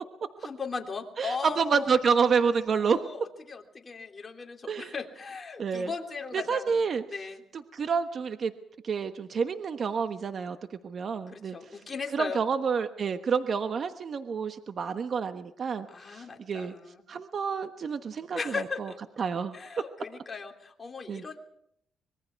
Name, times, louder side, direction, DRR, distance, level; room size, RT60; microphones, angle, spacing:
voice 1, 0.4-1.9 2.7-6.7 7.1-7.4 11.3-12.4 15.9-17.0 18.3-19.0 19.5-21.4, left 5 dB, 30° left, 3 dB, 3.3 m, -37 dB
voice 2, 1.2-3.0 4.7-4.9 5.6-5.9 6.3-7.0 7.7-8.5 8.8-10.6 10.8-11.6 12.1-16.7 17.1-18.9 19.2-19.6 21.1-21.2, right 6 dB, 50° right, 8 dB, 1.2 m, -28 dB
25.0 x 22.0 x 4.7 m, 0.74 s
cardioid pair, 90°, 0 cm